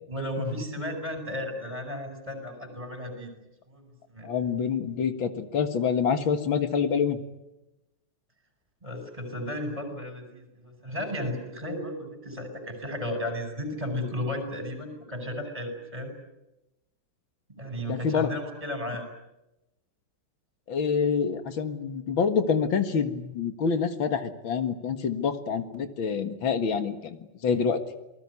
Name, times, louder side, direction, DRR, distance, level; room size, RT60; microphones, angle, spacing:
voice 1, 0.1-3.3 3.7-4.3 8.8-16.1 17.5-19.1, left 1 dB, 15° right, 6 dB, 6.1 m, -34 dB
voice 2, 4.2-7.2 17.9-18.3 20.7-27.8, left 6 dB, 75° left, 9 dB, 2.5 m, -27 dB
28.0 x 19.5 x 9.7 m, 0.95 s
omnidirectional pair, 2.2 m